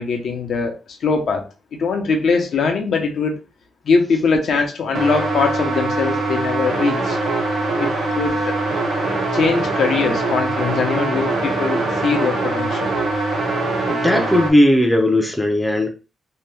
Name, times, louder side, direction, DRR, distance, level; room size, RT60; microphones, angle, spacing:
voice 1, 0.0-1.4 1.7-3.4 3.8-7.2 7.8-8.6 9.3-12.9, left 4 dB, 65° left, 3 dB, 0.7 m, -21 dB
sound 1, 4.9-14.5, right 2 dB, 90° right, 1.0 m, -22 dB
voice 2, 13.9-15.9, left 1 dB, 5° left, 2 dB, 0.5 m, -16 dB
2.7 x 2.2 x 3.2 m, 0.32 s
cardioid pair, 115°, 0 cm